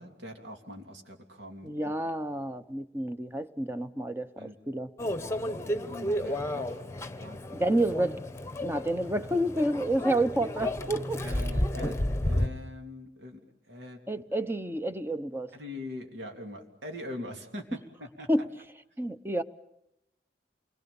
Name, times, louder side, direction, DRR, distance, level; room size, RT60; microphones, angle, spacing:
voice 1, 0.0-1.9 4.4-4.6 5.7-6.9 7.2-7.4 11.2-13.4 13.7-14.0 15.5-18.3, left 1 dB, 70° right, 2 dB, 3.3 m, -42 dB
voice 2, 1.6-4.9 7.5-8.1 8.6-11.2 14.1-15.5 18.3-18.5 19.0-19.4, right 1 dB, 15° right, 11 dB, 0.9 m, -29 dB
Microwave oven, 5.0-12.5, left 1 dB, 15° left, 1.1 m, -32 dB
28.5 x 22.0 x 7.1 m, 0.81 s
head